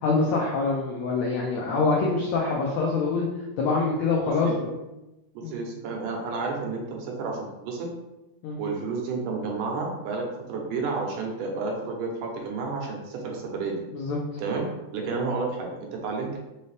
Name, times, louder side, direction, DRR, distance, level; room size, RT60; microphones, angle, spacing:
voice 1, 0.0-3.3 3.6-4.7 5.4-5.6 8.4-8.6 13.9-14.2, left 4 dB, 85° left, -3 dB, 1.5 m, -25 dB
voice 2, 4.4-4.8 5.3-7.9 8.6-13.8 14.4-16.4, right 4 dB, 75° right, 0 dB, 2.3 m, -31 dB
5.4 x 2.8 x 3.2 m, 0.97 s
omnidirectional pair, 3.9 m